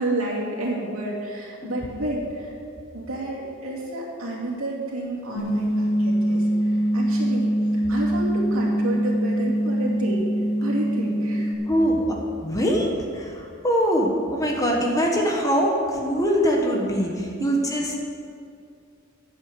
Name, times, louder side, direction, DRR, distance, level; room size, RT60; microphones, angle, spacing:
voice 1, 0.0-2.5 2.9-7.5 7.9-10.3 10.6-11.5, right 1 dB, 85° right, -3 dB, 2.6 m, -30 dB
sound 1, 5.4-11.6, right 1 dB, 75° left, 1.5 m, -23 dB
voice 2, 11.7-17.9, equal, 15° left, 0 dB, 1.4 m, -23 dB
9.6 x 8.0 x 7.0 m, 2.4 s
head